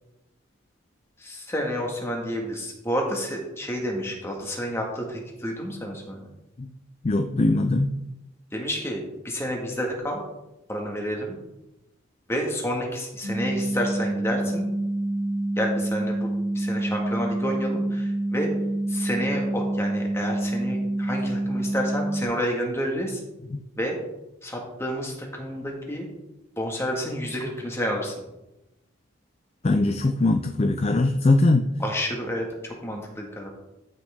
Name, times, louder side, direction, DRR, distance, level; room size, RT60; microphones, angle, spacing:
voice 1, 1.2-6.2 8.5-10.2 10.7-11.4 12.3-14.7 15.6-16.3 16.6-18.5 18.9-23.2 23.8-24.0 24.4-26.1 26.6-28.1 31.8-33.5, equal, 15° left, 0 dB, 1.8 m, -30 dB
voice 2, 7.0-8.0 23.5-23.6 29.6-31.7, left 2 dB, 30° left, 7 dB, 0.4 m, -21 dB
sound 1, 13.2-22.2, right 1 dB, 60° right, 2.3 m, -27 dB
14.0 x 6.2 x 3.6 m, 0.95 s
head